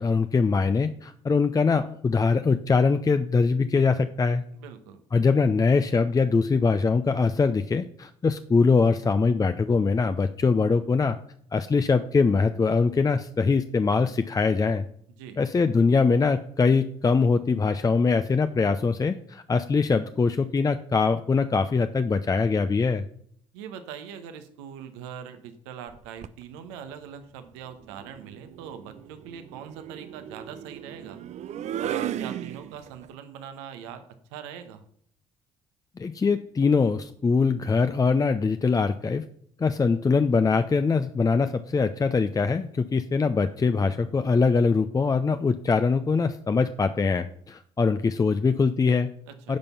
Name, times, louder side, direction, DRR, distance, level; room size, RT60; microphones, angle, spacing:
voice 1, 0.0-4.4 5.1-11.2 11.5-14.9 15.4-23.0 36.0-39.2 39.6-49.1 49.5-49.6, left 4 dB, 25° left, 10 dB, 0.6 m, -23 dB
voice 2, 4.5-5.0 15.2-15.4 23.5-31.2 31.8-34.0 34.3-34.8 49.3-49.6, right 8 dB, 85° right, 9 dB, 1.2 m, -42 dB
sound 1, 25.9-26.4 27.8-33.1, right 10 dB, 55° right, 0.5 m, -36 dB
10.5 x 5.3 x 5.7 m, 0.64 s
hypercardioid pair, 55°, 14 cm